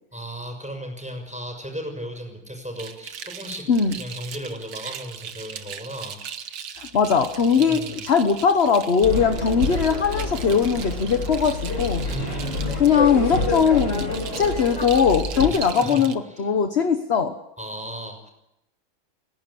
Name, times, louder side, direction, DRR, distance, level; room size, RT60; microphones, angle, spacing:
voice 1, 0.1-3.7 4.0-6.2 7.6-8.0 12.0-12.8 15.5-16.5 17.6-18.3, equal, 5° right, 2 dB, 6.2 m, -35 dB
sound 1, 2.8-16.1, right 8 dB, 85° right, 2.0 m, -39 dB
voice 2, 6.7-12.1 12.8-14.1 14.4-17.3, left 6 dB, 40° left, 7 dB, 1.2 m, -20 dB
sound 2, 9.0-15.5, left 2 dB, 65° left, 6.6 m, -28 dB
29.5 x 11.5 x 8.6 m, 0.87 s
omnidirectional pair, 2.1 m